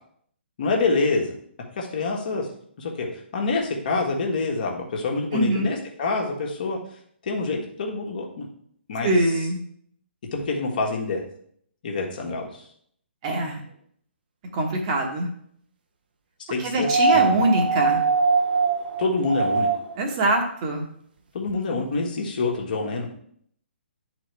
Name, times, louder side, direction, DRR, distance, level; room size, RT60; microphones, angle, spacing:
voice 1, 0.6-1.3 1.8-2.5 2.8-3.1 3.3-6.8 7.2-8.5 8.9-9.1 10.3-11.2 11.8-12.6 16.5-17.4 19.0-19.7 21.3-23.1, left 3 dB, 45° left, 0 dB, 1.4 m, -26 dB
voice 2, 5.3-5.7 9.0-9.6 13.2-13.6 14.5-15.3 16.6-18.0 20.0-20.9, right 1 dB, 35° right, 2 dB, 1.2 m, -23 dB
sound 1, 16.8-20.1 21.5-21.6, right 4 dB, 50° right, 0.8 m, -22 dB
10.0 x 4.1 x 3.3 m, 0.65 s
figure-of-eight pair, 130°, 6 cm